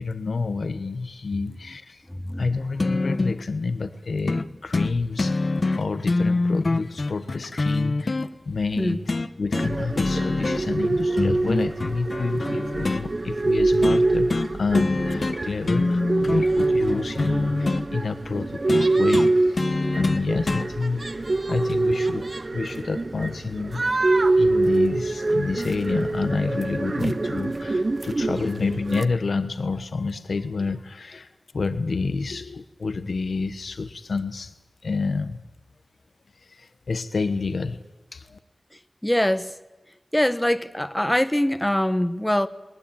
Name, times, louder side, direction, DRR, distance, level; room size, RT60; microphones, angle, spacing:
voice 1, 0.0-2.0 2.4-8.2 8.5-19.7 19.9-23.8 24.4-34.5 34.8-35.4 36.4-38.4, left 4 dB, 90° left, 10 dB, 1.1 m, -29 dB
voice 2, 2.1-2.4 8.8-9.0 39.0-39.5 40.1-42.5, left 1 dB, 10° left, 13 dB, 1.0 m, -23 dB
sound 1, 2.8-3.4 4.3-4.5 4.7-4.9 5.2-8.3 9.1-9.7 10.0-10.8 11.2-13.0 13.8-14.0 14.3-14.5 14.7-15.4 15.6-17.9 18.7-20.7 21.7-21.8, left 3 dB, 55° left, 1.0 m, -25 dB
sound 2, 9.5-29.1, right 2 dB, 45° right, 0.7 m, -25 dB
20.0 x 20.0 x 8.8 m, 1.1 s
wide cardioid pair, 80°, 0 cm